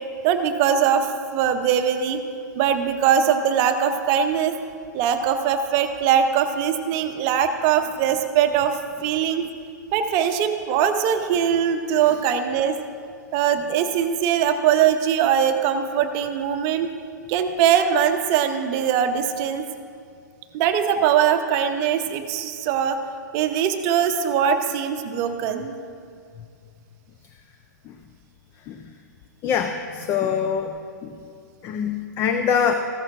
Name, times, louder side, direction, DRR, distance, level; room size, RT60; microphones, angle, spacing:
voice 1, 0.2-2.2 2.6-4.5 4.9-8.8 9.0-9.4 9.9-12.8 13.3-16.9 17.3-19.6 20.5-23.0 23.3-25.7, right 8 dB, 30° right, 8 dB, 0.7 m, -21 dB
voice 2, 29.4-30.8 31.0-31.2 31.6-32.7, left 7 dB, 25° left, 7 dB, 0.5 m, -24 dB
14.5 x 13.5 x 2.5 m, 2.3 s
figure-of-eight pair, 110°, 10 cm